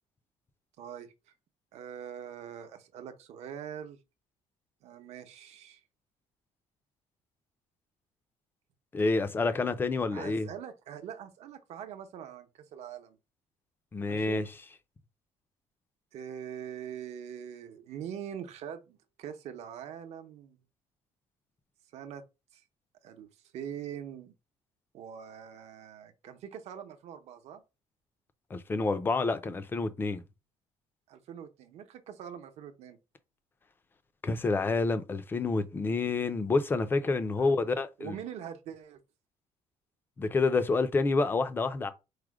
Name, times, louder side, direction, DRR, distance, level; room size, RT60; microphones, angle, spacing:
voice 1, 0.8-1.1 1.7-4.0 4.8-5.8 10.1-13.2 14.1-14.4 16.1-20.6 21.9-22.2 22.5-22.6 23.0-24.3 24.9-27.6 31.1-33.0 37.4-37.5 38.0-39.0, right 9 dB, 60° right, 0.8 m, -43 dB
voice 2, 8.9-10.5 13.9-14.4 28.5-30.2 34.2-38.1 40.2-41.9, left 3 dB, 15° left, 0.4 m, -28 dB
4.8 x 2.1 x 4.7 m
cardioid pair, 170°, 13 cm